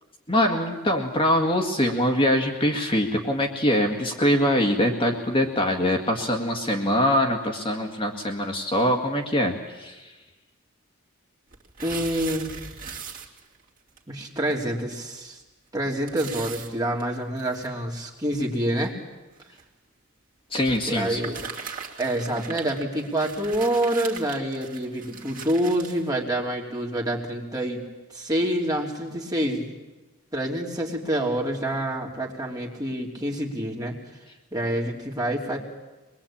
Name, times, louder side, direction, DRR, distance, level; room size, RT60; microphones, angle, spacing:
voice 1, 0.3-10.1 20.5-21.2, left 1 dB, 25° left, 3 dB, 2.0 m, -23 dB
sound 1, 11.5-13.6 14.0-14.1 14.5-14.6 14.9-15.0 16.1-17.7 18.3-18.4 19.4-19.6 20.6-26.0, right 6 dB, 40° right, 2.7 m, -39 dB
voice 2, 11.8-12.6 14.1-15.4 15.7-19.0 20.9-21.5 22.0-27.8 28.1-29.7 30.3-34.0 34.5-35.6, right 1 dB, 20° right, -1 dB, 3.1 m, -27 dB
24.0 x 21.5 x 8.8 m, 1.1 s
head